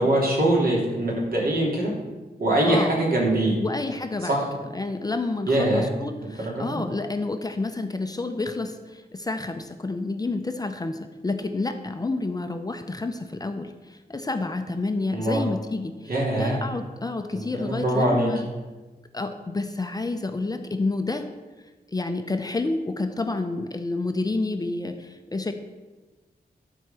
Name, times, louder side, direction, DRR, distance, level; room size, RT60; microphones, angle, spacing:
voice 1, 0.0-1.9 2.4-3.5 4.2-4.4 5.5-5.8 6.4-6.6 15.1-15.4 16.1-16.6 17.3-18.3, right 1 dB, 65° right, -3 dB, 3.1 m, -23 dB
voice 2, 2.7-3.0 3.6-18.5 19.1-21.3 21.9-25.5, left 3 dB, 25° left, 6 dB, 0.6 m, -29 dB
12.5 x 4.6 x 6.8 m, 1.2 s
wide cardioid pair, 170°, 17 cm